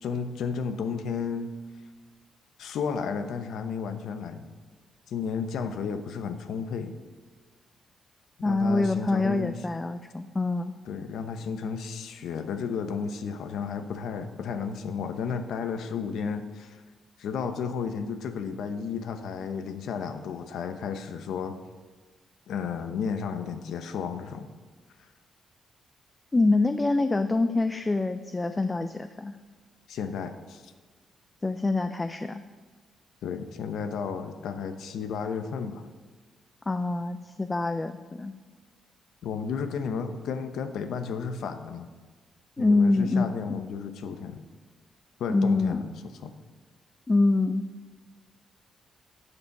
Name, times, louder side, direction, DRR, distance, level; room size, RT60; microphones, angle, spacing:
voice 1, 0.0-1.5 2.6-4.5 5.1-6.9 8.4-9.6 10.9-16.8 17.2-21.6 22.5-24.5 29.9-30.7 33.2-35.8 39.2-41.9 42.6-44.4 45.2-46.3, left 6 dB, 80° left, 9 dB, 0.9 m, -33 dB
voice 2, 8.4-10.8 26.3-29.4 31.4-32.4 36.7-38.3 42.6-43.3 45.3-45.8 47.1-47.7, left 3 dB, 15° left, 10 dB, 0.4 m, -25 dB
12.5 x 6.9 x 5.9 m, 1.4 s
cardioid pair, 135°, 0 cm